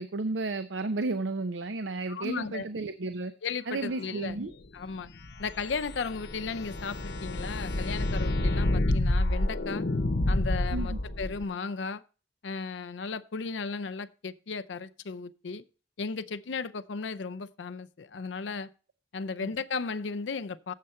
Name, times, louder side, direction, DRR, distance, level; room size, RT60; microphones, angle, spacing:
voice 1, 0.0-3.3 3.7-4.5 10.7-11.0 19.4-19.5, right 3 dB, 85° right, 0.6 m, -33 dB
voice 2, 2.1-2.7 3.4-4.4 4.7-5.1 5.4-9.9 10.3-12.0 12.4-15.6 16.0-18.7 19.1-20.7, left 4 dB, 90° left, 0.5 m, -35 dB
sound 1, 5.1-11.4, left 1 dB, 60° left, 0.8 m, -29 dB
7.6 x 7.4 x 5.5 m
head